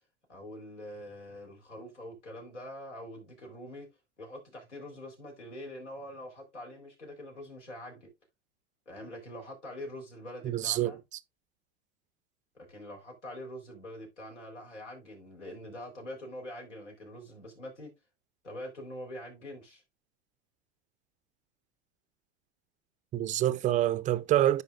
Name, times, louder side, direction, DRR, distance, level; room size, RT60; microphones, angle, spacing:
voice 1, 0.3-3.9 4.2-8.1 8.9-11.0 12.7-17.9 18.4-19.8, left 1 dB, 90° left, 4.0 m, -44 dB
voice 2, 10.4-11.0 23.1-24.6, right 13 dB, 20° right, 0.4 m, -26 dB
13.5 x 4.9 x 2.4 m
hypercardioid pair, 100°, 35 cm